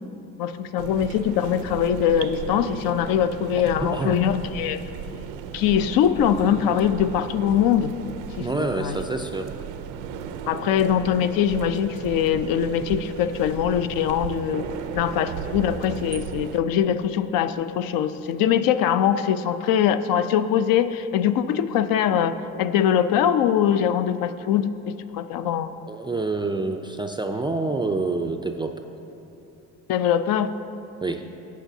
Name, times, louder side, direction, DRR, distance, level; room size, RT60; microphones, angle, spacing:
voice 1, 0.4-4.8 5.5-7.9 8.4-9.0 10.5-14.7 14.9-25.7 29.9-30.5, left 9 dB, 70° left, 12 dB, 0.5 m, -22 dB
sound 1, 0.8-16.6, right 8 dB, 85° right, 0.6 m, -36 dB
voice 2, 3.8-4.2 8.4-9.5 25.9-28.7 31.0-31.2, right 3 dB, 15° right, 5 dB, 0.3 m, -27 dB
15.0 x 8.1 x 2.7 m, 3.0 s
supercardioid pair, 85°, 36 cm